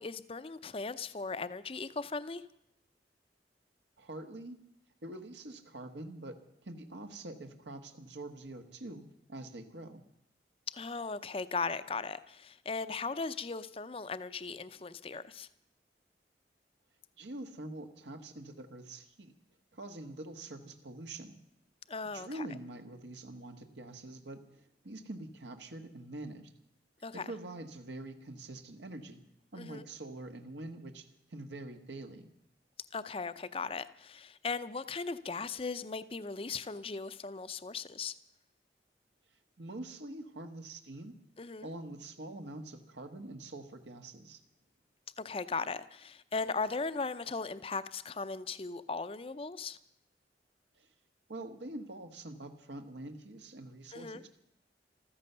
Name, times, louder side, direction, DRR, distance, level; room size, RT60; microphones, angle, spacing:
voice 1, 0.0-2.4 10.7-15.5 21.9-22.5 27.0-27.3 29.6-29.8 32.9-38.2 41.4-41.7 45.2-49.8 53.9-54.2, left 4 dB, 30° left, 0.6 m, -38 dB
voice 2, 4.0-4.6 5.0-9.0 9.3-10.0 17.2-19.3 19.7-21.4 22.1-26.5 27.1-29.2 29.5-32.3 39.6-41.1 41.6-44.4 50.8-50.9 51.3-54.3, right 2 dB, 80° right, 1.5 m, -45 dB
14.5 x 13.5 x 6.8 m
head